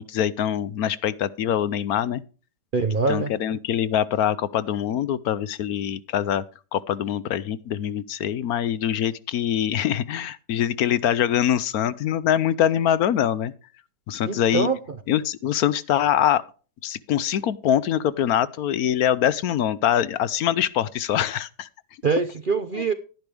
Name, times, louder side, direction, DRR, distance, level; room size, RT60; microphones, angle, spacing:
voice 1, 0.0-2.2 3.1-6.4 6.7-13.5 14.1-14.7 15.1-16.4 16.8-21.7 22.8-22.9, left 10 dB, 70° left, 1.1 m, -24 dB
voice 2, 2.7-3.3 14.2-14.8 22.0-22.9, right 4 dB, 50° right, 0.6 m, -23 dB
11.5 x 10.5 x 3.3 m
omnidirectional pair, 1.8 m